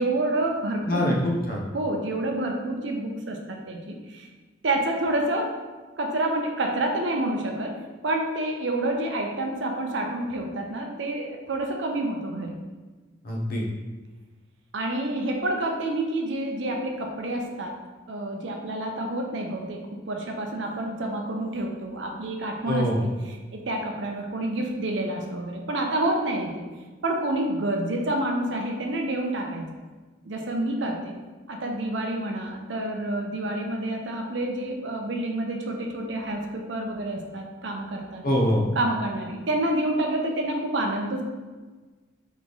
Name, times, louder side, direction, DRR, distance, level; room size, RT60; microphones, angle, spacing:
voice 1, 0.0-1.2 1.7-4.3 4.6-5.6 6.0-12.6 14.7-17.8 18.1-26.6 27.0-29.8 30.2-31.1 31.5-38.2 38.8-41.2, right 1 dB, 65° right, 2 dB, 0.6 m, -28 dB
voice 2, 0.9-1.6 13.2-13.6 22.7-23.0 38.2-38.6, equal, 45° left, -2 dB, 0.8 m, -24 dB
3.5 x 3.1 x 3.9 m, 1.3 s
head